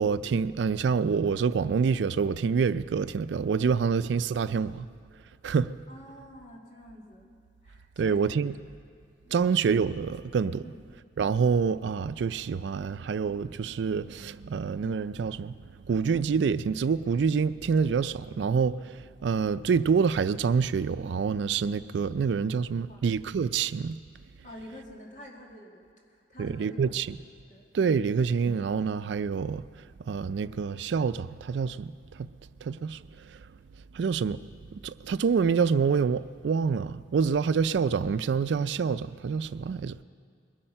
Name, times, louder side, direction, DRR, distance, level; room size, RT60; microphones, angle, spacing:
voice 1, 0.0-4.7 5.4-5.7 8.0-8.5 9.3-10.6 11.2-15.6 15.9-18.9 19.2-24.0 26.4-27.1 27.7-29.7 30.1-31.9 32.2-32.3 32.6-33.0 33.9-34.4 34.8-40.0, right 6 dB, 75° right, 0.4 m, -26 dB
voice 2, 5.9-8.6 9.2-9.5 10.6-10.9 22.7-23.1 24.4-27.7, equal, 45° left, 2.3 m, -49 dB
21.5 x 8.7 x 5.6 m
head